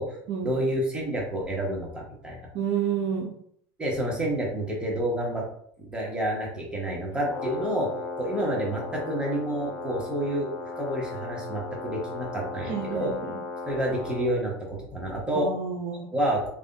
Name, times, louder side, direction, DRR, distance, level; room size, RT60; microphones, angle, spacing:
voice 1, 0.4-2.5 3.8-5.4 5.8-7.9 8.2-10.5 10.8-13.1 13.7-15.5 16.1-16.5, right 1 dB, 10° right, -3 dB, 1.1 m, -29 dB
voice 2, 2.5-3.3 12.6-13.4 15.3-16.1, right 7 dB, 50° right, 2 dB, 0.5 m, -29 dB
Brass instrument, 7.1-14.3, left 3 dB, 25° left, 0.7 m, -36 dB
3.3 x 2.4 x 2.7 m, 0.65 s
supercardioid pair, 105°, 11 cm